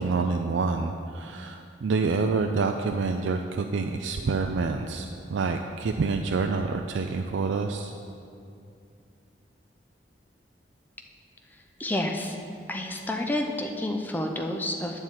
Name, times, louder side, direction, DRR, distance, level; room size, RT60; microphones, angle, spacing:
voice 1, 0.0-7.9, right 4 dB, 85° right, 4 dB, 0.4 m, -27 dB
voice 2, 11.8-12.4 12.7-15.0, left 1 dB, 10° left, 2 dB, 0.5 m, -29 dB
9.8 x 4.5 x 7.3 m, 2.5 s
head